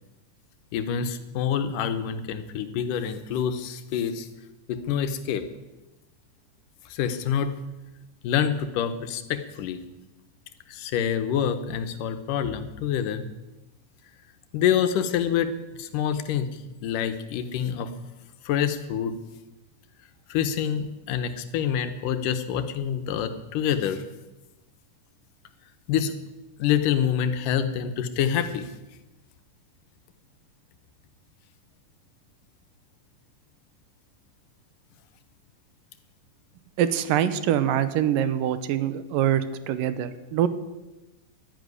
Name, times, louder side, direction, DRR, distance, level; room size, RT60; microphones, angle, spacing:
voice 1, 0.7-4.3 4.7-5.5 6.9-7.5 8.2-9.8 10.7-13.3 14.5-17.9 18.5-19.2 20.3-24.0 25.9-26.1 26.6-28.7, left 8 dB, 80° left, 10 dB, 2.6 m, -26 dB
voice 2, 36.8-40.5, right 10 dB, 90° right, 13 dB, 2.6 m, -24 dB
11.5 x 10.5 x 9.6 m, 1.1 s
omnidirectional pair, 3.8 m